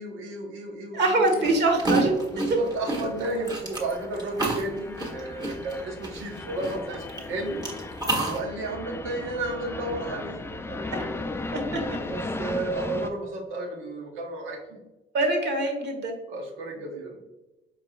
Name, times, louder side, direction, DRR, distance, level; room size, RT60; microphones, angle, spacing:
voice 1, 0.0-1.4 2.3-7.7 8.1-11.2 12.0-14.8 16.3-17.2, right 2 dB, 90° right, 2 dB, 1.0 m, -33 dB
voice 2, 0.9-2.2 10.9-11.0 11.5-12.0 15.1-16.2, right 2 dB, 60° right, 2 dB, 1.3 m, -24 dB
sound 1, 1.3-7.2 7.6-8.4, right 2 dB, 20° right, 1.3 m, -29 dB
sound 2, 1.4-13.1, left 2 dB, 10° left, 0.3 m, -37 dB
4.8 x 4.3 x 2.4 m, 1.0 s
cardioid pair, 90°, 20 cm